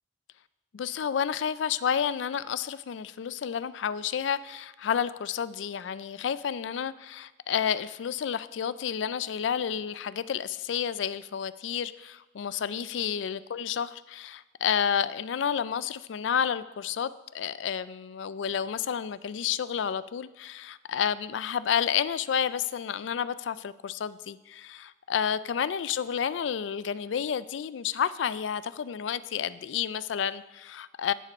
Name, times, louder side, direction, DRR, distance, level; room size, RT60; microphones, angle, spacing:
voice 1, 0.7-17.1 17.3-31.1, left 8 dB, 90° left, 0.4 m, -30 dB
10.0 x 6.7 x 5.3 m
head